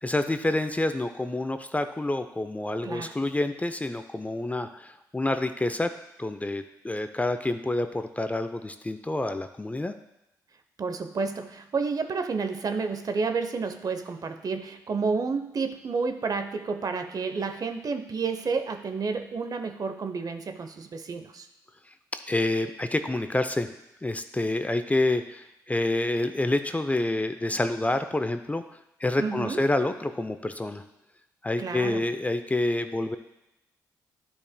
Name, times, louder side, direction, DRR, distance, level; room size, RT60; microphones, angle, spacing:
voice 1, 0.0-5.9 6.2-9.9 22.3-23.7 24.0-28.6 29.0-30.8 31.4-33.2, left 2 dB, 15° left, 9 dB, 0.6 m, -28 dB
voice 2, 10.8-21.5 29.2-29.6 31.6-32.0, right 4 dB, 45° right, 7 dB, 0.8 m, -30 dB
12.0 x 5.3 x 2.2 m, 0.89 s
hypercardioid pair, 45°, 9 cm